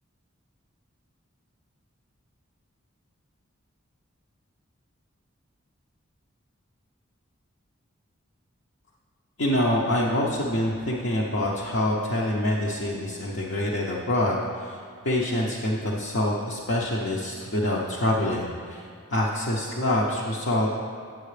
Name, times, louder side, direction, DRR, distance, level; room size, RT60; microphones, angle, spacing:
voice 1, 9.4-14.8 15.0-20.7, left 1 dB, 65° left, -5 dB, 0.8 m, -26 dB
9.1 x 7.6 x 3.3 m, 2.3 s
head